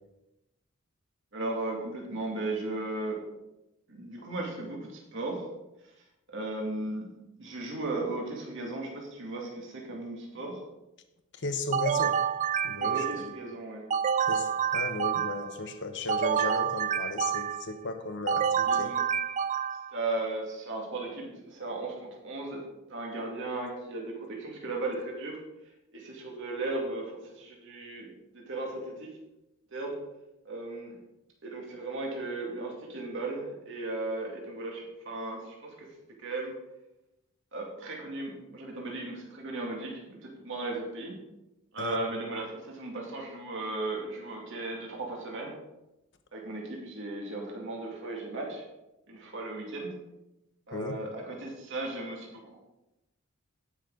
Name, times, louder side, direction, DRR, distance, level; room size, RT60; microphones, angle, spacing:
voice 1, 1.3-3.2 3.9-5.5 6.3-7.1 7.4-10.6 12.8-13.8 18.7-19.0 19.7-22.6 22.9-25.4 25.9-28.1 28.3-29.1 29.7-30.0 30.4-31.0 31.4-35.9 36.2-36.5 37.5-41.2 41.7-45.5 46.3-48.6 49.1-49.9 50.7-52.6, right 2 dB, 65° right, -1 dB, 2.5 m, -36 dB
voice 2, 11.4-12.2 12.6-13.3 14.3-18.9 41.8-42.0 50.7-51.0, left 3 dB, 60° left, 7 dB, 1.2 m, -35 dB
sound 1, 11.7-13.4 13.9-15.6 16.1-17.7 18.3-20.0, right 8 dB, 35° right, 0.3 m, -28 dB
17.5 x 6.3 x 3.9 m, 0.93 s
head